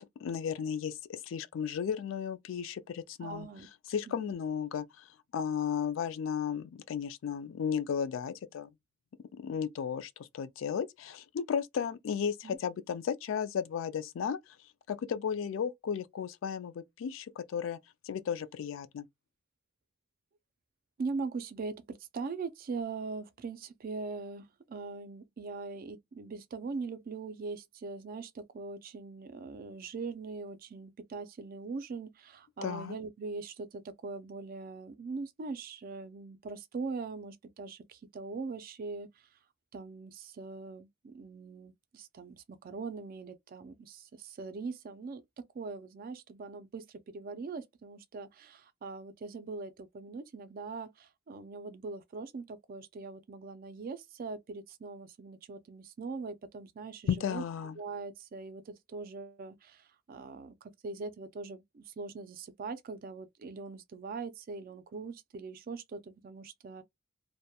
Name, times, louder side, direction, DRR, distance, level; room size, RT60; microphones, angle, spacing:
voice 1, 0.2-3.5 3.9-8.7 9.3-14.6 14.9-17.8 18.0-19.1 32.6-33.0 57.1-57.8, left 7 dB, 75° left, 0.3 m, -34 dB
voice 2, 3.2-3.7 4.1-4.3 12.4-12.6 21.0-39.1 39.7-45.2 45.5-57.4 57.8-66.8, right 4 dB, 45° right, 0.4 m, -41 dB
2.8 x 2.1 x 2.2 m
head